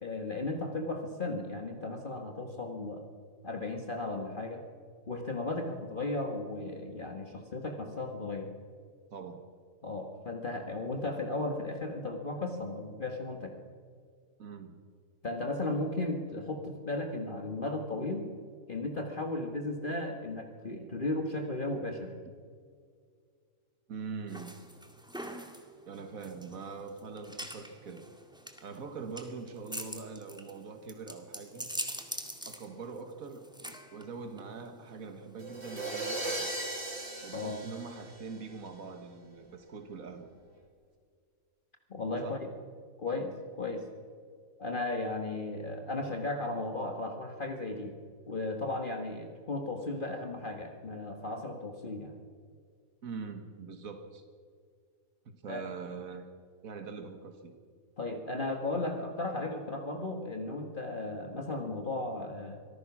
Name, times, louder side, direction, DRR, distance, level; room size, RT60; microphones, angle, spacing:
voice 1, 0.0-3.1 3.4-4.6 5.1-8.5 9.8-13.6 15.2-18.3 18.7-22.1 37.3-37.6 41.9-42.5 43.0-43.8 44.6-47.9 48.3-52.2 55.5-55.6 58.0-62.6, left 2 dB, 40° left, 3 dB, 1.7 m, -35 dB
voice 2, 9.1-9.4 14.4-14.8 23.9-24.5 25.9-28.1 28.6-31.7 32.5-36.5 37.2-40.3 42.2-42.5 53.0-54.3 55.3-56.3 56.6-57.6, right 5 dB, 80° right, 6 dB, 2.0 m, -43 dB
sound 1, 24.3-35.6, equal, 5° right, 2.0 m, -44 dB
sound 2, 35.4-38.7, right 2 dB, 50° right, 3.1 m, -37 dB
25.5 x 18.5 x 6.1 m, 2.1 s
omnidirectional pair, 1.4 m